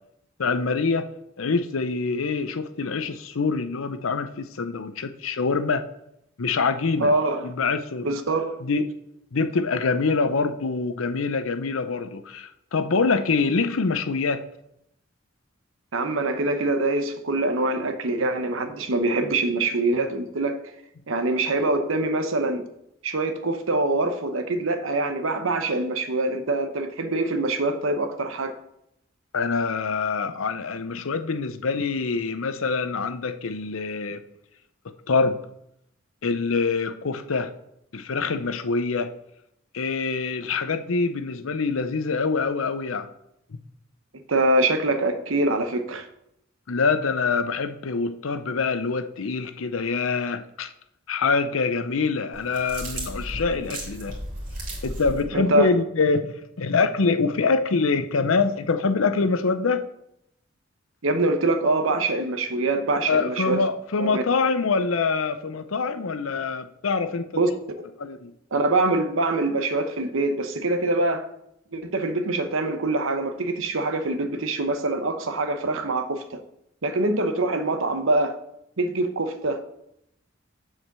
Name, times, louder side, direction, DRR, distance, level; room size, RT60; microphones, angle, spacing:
voice 1, 0.4-1.1 1.4-5.9 6.4-7.1 7.4-8.1 8.6-8.9 9.3-14.4 29.3-34.2 35.1-35.4 36.2-37.5 37.9-39.1 39.7-43.1 46.7-50.7 51.1-54.2 54.8-59.8 63.1-67.3 68.0-68.3, left 4 dB, 90° left, 0.6 m, -25 dB
voice 2, 7.0-7.5 8.0-8.6 15.9-20.6 21.1-22.6 23.0-28.5 44.1-46.1 55.3-55.7 61.0-63.6 64.0-64.2 67.3-67.5 67.8-67.9 68.5-71.2 71.7-76.4 76.8-78.4 78.8-79.6, right 2 dB, 80° right, 0.9 m, -24 dB
sound 1, 52.3-55.2, right 1 dB, 45° right, 2.8 m, -34 dB
7.3 x 5.0 x 6.7 m
head